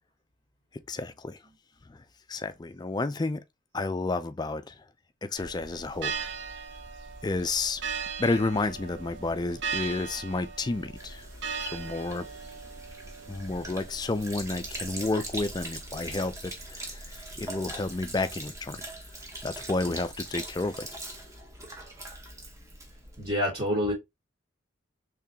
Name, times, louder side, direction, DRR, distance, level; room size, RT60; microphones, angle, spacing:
voice 1, 0.9-1.4 1.9-2.0 2.3-3.4 3.7-4.8 5.2-6.1 7.2-7.8 8.2-12.3 13.3-18.8 19.4-20.9, left 3 dB, 20° left, 0.3 m, -31 dB
sound 1, 5.4-18.2, right 5 dB, 65° right, 0.6 m, -40 dB
Sink (filling or washing), 11.0-23.3, right 1 dB, 15° right, 0.8 m, -42 dB
voice 2, 23.2-23.9, left 1 dB, 30° right, 1.3 m, -27 dB
3.7 x 3.2 x 2.8 m
head